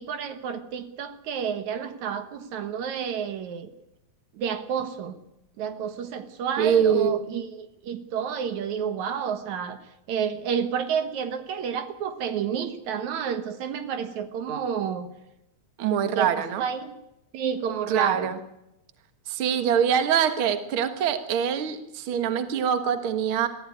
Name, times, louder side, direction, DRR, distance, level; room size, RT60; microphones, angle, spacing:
voice 1, 0.0-3.7 4.3-5.2 5.6-9.8 10.1-15.1 16.2-16.3 16.6-16.9 17.3-18.3, right 7 dB, 75° right, 9 dB, 2.6 m, -30 dB
voice 2, 6.6-7.4 15.8-16.6 17.9-18.4 19.3-23.5, right 8 dB, 50° right, 8 dB, 2.1 m, -24 dB
22.5 x 14.5 x 9.4 m, 0.87 s
omnidirectional pair, 3.4 m